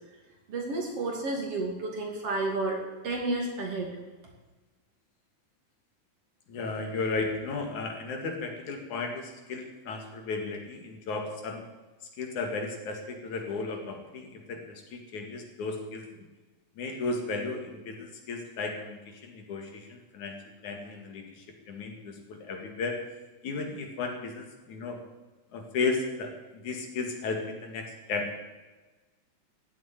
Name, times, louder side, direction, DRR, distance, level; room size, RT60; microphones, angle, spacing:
voice 1, 0.5-3.9, right 2 dB, 50° right, 0 dB, 3.6 m, -31 dB
voice 2, 6.5-11.7 12.2-16.3 16.8-20.4 20.6-23.0 23.4-25.0 25.5-28.3, left 3 dB, 70° left, 3 dB, 3.5 m, -34 dB
15.5 x 8.4 x 9.7 m, 1.2 s
omnidirectional pair, 3.6 m